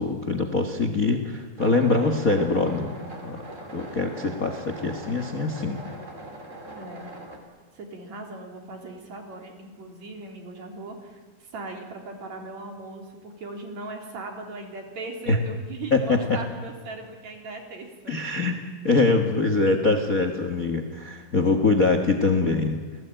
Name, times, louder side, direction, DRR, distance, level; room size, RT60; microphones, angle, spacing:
voice 1, 0.0-3.0 3.2-3.4 3.7-5.8 15.3-15.4 15.9-16.4 18.1-18.5 18.8-22.8, left 3 dB, 70° left, 7 dB, 0.8 m, -23 dB
sound 1, 1.6-7.4, right 1 dB, 20° right, 3.2 m, -41 dB
voice 2, 6.7-7.1 7.7-18.2 21.0-21.3, right 2 dB, 50° right, 3 dB, 4.3 m, -39 dB
30.0 x 19.0 x 9.0 m, 1.4 s
omnidirectional pair, 4.3 m